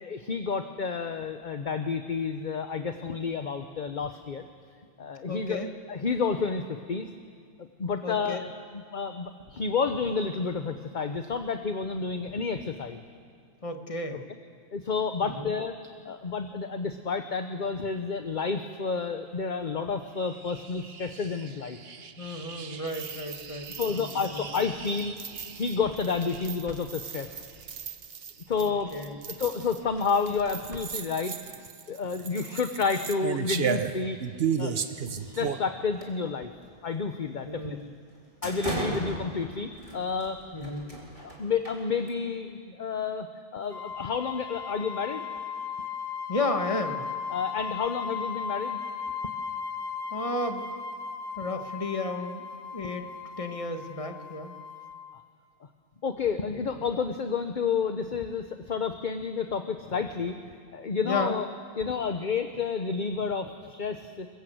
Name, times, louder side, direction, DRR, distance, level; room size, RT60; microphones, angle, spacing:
voice 1, 0.0-4.5 5.0-5.6 5.9-7.1 7.6-8.4 8.7-13.0 14.7-15.8 16.0-21.8 23.7-25.1 25.5-27.5 28.5-28.9 29.3-31.4 31.9-34.2 34.6-34.7 35.2-36.5 36.8-37.8 38.4-40.4 41.2-43.3 43.5-45.2 47.3-48.8 56.0-61.4 61.8-64.3, left 5 dB, 50° left, 7 dB, 1.1 m, -30 dB
voice 2, 5.3-5.7 8.0-8.5 13.6-14.2 15.2-15.5 22.2-24.5 28.6-29.3 37.4-37.9 38.7-39.0 40.5-41.0 46.3-47.0 50.1-50.6 51.4-52.4 52.7-53.1 53.4-54.6 61.0-61.4, left 2 dB, 30° left, 5 dB, 1.6 m, -33 dB
sound 1, 20.3-35.7, right 7 dB, 70° right, 1.2 m, -36 dB
sound 2, 36.0-36.4 36.8-37.0 37.6-37.7 38.1-42.3, right 1 dB, 30° right, 3.6 m, -38 dB
sound 3, 43.7-55.1, left 6 dB, 75° left, 1.9 m, -37 dB
25.5 x 22.0 x 8.0 m, 2.2 s
omnidirectional pair, 1.1 m